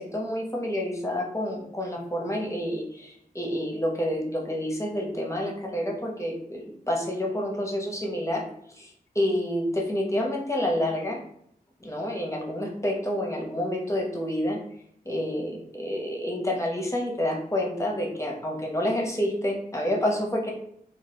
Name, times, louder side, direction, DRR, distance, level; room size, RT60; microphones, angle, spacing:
voice 1, 0.0-11.2 11.8-14.6 15.0-20.5, left 1 dB, 20° left, 0 dB, 0.7 m, -29 dB
2.7 x 2.0 x 3.3 m, 0.71 s
cardioid pair, 40°, 16 cm